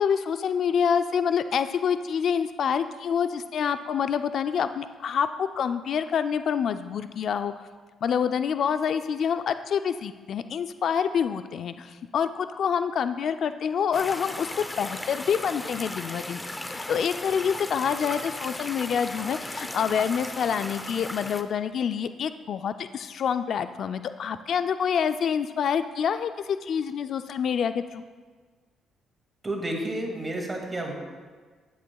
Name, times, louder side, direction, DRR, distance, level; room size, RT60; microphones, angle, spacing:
voice 1, 0.0-7.7 8.0-14.5 14.8-16.4 16.7-28.0, left 7 dB, 65° left, 10 dB, 0.3 m, -27 dB
sound 1, 13.9-21.4, left 1 dB, 15° left, 0.6 m, -36 dB
voice 2, 29.4-31.0, right 1 dB, 25° right, 1 dB, 2.0 m, -31 dB
11.5 x 9.3 x 2.3 m, 1.5 s
cardioid pair, 90°, 0 cm